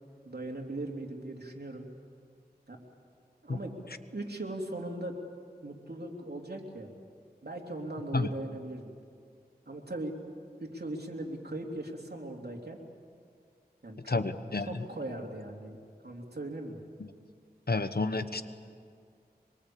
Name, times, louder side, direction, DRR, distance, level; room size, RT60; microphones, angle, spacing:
voice 1, 0.2-1.9 2.7-2.8 3.4-3.7 4.1-5.2 5.6-6.9 7.4-9.0 9.7-10.1 10.6-12.8 13.8-14.2 14.6-15.8 16.0-16.8, right 2 dB, 75° right, 0 dB, 3.1 m, -39 dB
voice 2, 14.1-14.8 17.0-17.1 17.7-18.4, left 3 dB, 70° left, 10 dB, 1.1 m, -30 dB
24.5 x 23.0 x 8.6 m, 2.2 s
wide cardioid pair, 45°, 17 cm